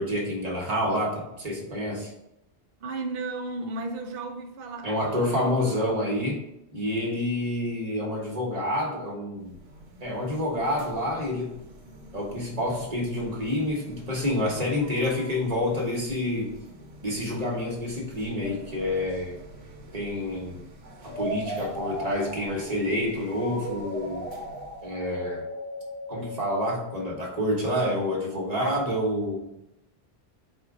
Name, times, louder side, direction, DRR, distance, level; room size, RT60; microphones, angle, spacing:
voice 1, 0.0-2.1 4.8-6.4 6.7-9.6 10.0-11.5 12.1-16.5 17.0-19.4 19.9-20.6 21.0-24.3 24.8-25.5 26.1-29.5, left 1 dB, 40° right, 1.2 m, -28 dB
voice 2, 2.8-5.6, right 3 dB, 60° right, 0.8 m, -34 dB
sound 1, 9.4-25.0, right 1 dB, 80° right, 1.1 m, -48 dB
sound 2, 21.0-27.8, right 1 dB, 25° right, 0.9 m, -36 dB
4.4 x 2.5 x 4.8 m
omnidirectional pair, 1.1 m